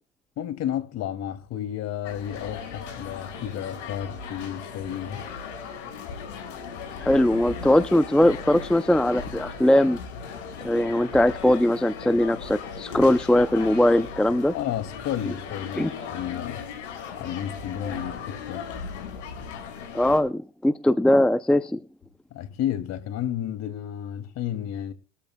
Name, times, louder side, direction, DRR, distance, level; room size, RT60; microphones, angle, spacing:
voice 1, 0.4-5.3 14.5-16.7 17.2-18.8 22.3-24.9, left 10 dB, 45° left, 2.5 m, -32 dB
sound 1, 2.0-20.2, left 6 dB, 85° left, 5.8 m, -37 dB
voice 2, 7.0-10.0 10.6-14.5 15.8-15.9 19.9-21.8, left 1 dB, ahead, 0.6 m, -20 dB
21.5 x 14.0 x 2.3 m
supercardioid pair, 105°, 35 cm